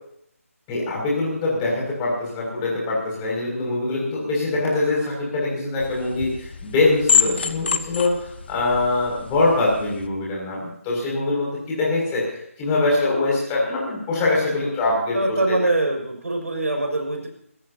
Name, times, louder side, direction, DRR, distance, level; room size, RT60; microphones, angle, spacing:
voice 1, 0.7-15.2 15.5-15.6, left 2 dB, 15° left, -4 dB, 6.5 m, -23 dB
sound 1, 5.8-10.1, left 5 dB, 45° left, 1.1 m, -26 dB
voice 2, 15.1-17.3, right 2 dB, 70° right, 2 dB, 6.3 m, -23 dB
24.0 x 17.0 x 2.9 m, 0.70 s
figure-of-eight pair, 160°, 8 cm